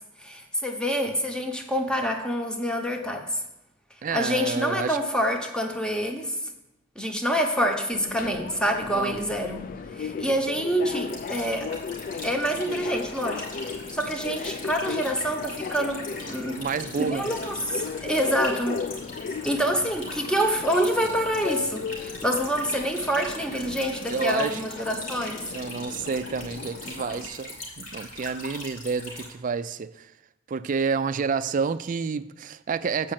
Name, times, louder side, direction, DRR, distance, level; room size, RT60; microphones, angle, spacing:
voice 1, 0.2-3.4 4.1-6.4 7.0-9.7 10.0-11.7 12.2-13.4 13.9-16.6 17.0-18.8 19.4-25.4, equal, 5° left, 0.8 m, -27 dB
voice 2, 4.0-5.0 8.9-9.2 16.6-17.3 24.1-24.6 25.5-30.1 30.5-33.1, right 5 dB, 40° right, 0.3 m, -29 dB
Subway metro underground, 7.9-27.3, left 5 dB, 45° left, 0.3 m, -36 dB
sound 1, 11.1-29.3, left 2 dB, 75° left, 2.7 m, -40 dB
7.6 x 5.0 x 7.4 m
head